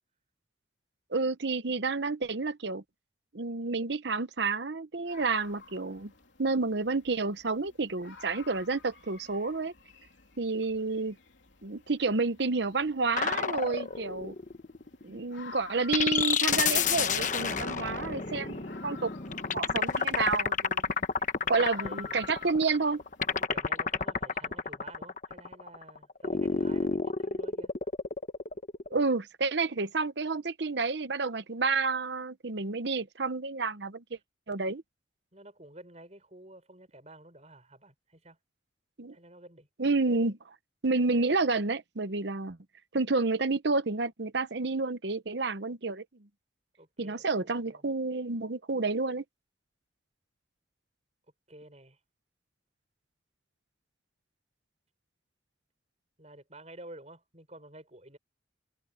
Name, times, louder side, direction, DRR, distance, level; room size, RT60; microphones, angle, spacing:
voice 1, 1.1-2.8 3.3-6.1 6.4-9.7 10.4-11.2 11.6-14.3 15.0-20.8 21.5-23.0 28.9-34.0 34.5-34.8 39.0-39.2 39.8-40.5 40.8-42.6 42.9-46.0 47.0-49.2, right 3 dB, 60° right, 0.9 m, -30 dB
sound 1, 5.0-23.4, left 5 dB, 75° left, 3.3 m, -52 dB
sound 2, 13.1-15.3 15.9-29.0, left 5 dB, 40° left, 1.1 m, -30 dB
voice 2, 21.4-22.4 23.3-27.7 35.3-38.4 39.1-39.7 46.8-47.9 51.5-52.0 56.2-58.2, right 1 dB, 35° right, 6.7 m, -51 dB
head